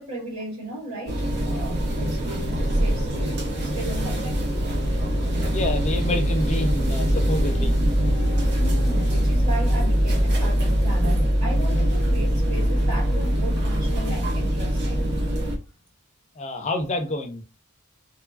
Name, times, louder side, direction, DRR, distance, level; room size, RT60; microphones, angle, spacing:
voice 1, 0.0-4.5 8.6-15.1, right 1 dB, 80° right, 1.5 m, -36 dB
sound 1, 1.1-15.6, equal, 55° right, 0.7 m, -22 dB
voice 2, 5.5-7.9 16.4-17.4, left 1 dB, 30° left, 0.5 m, -28 dB
2.9 x 2.3 x 2.4 m
head